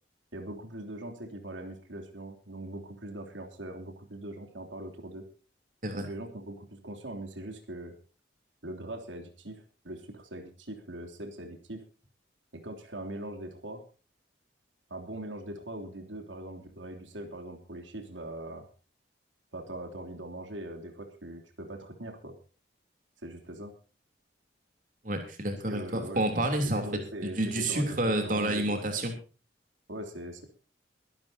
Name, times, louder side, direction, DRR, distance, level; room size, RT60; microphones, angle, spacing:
voice 1, 0.3-5.2 5.9-7.9 8.6-11.8 12.5-13.8 14.9-18.7 19.5-22.4 23.2-23.7 25.7-26.3 26.6-28.9 29.9-30.4, right 1 dB, 80° right, 4 dB, 3.2 m, -41 dB
voice 2, 25.0-26.8 27.2-29.1, right 1 dB, 45° right, 5 dB, 3.3 m, -29 dB
22.5 x 12.5 x 2.8 m, 0.36 s
head